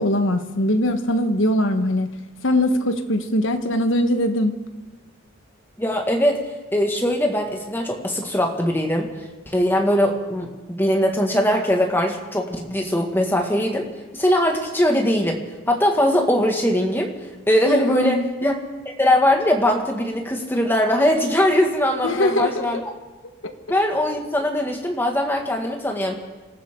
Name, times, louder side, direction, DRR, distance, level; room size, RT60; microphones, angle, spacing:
voice 1, 0.0-2.1 2.4-4.5 17.7-18.2 22.0-22.7 23.4-23.5, left 1 dB, 65° left, 7 dB, 1.3 m, -21 dB
voice 2, 5.8-6.4 6.7-9.1 9.5-13.9 14.1-15.4 15.7-17.1 17.5-18.5 18.9-22.9 23.7-26.1, left 1 dB, 10° left, 2 dB, 1.9 m, -21 dB
27.5 x 14.0 x 3.8 m, 1.2 s
head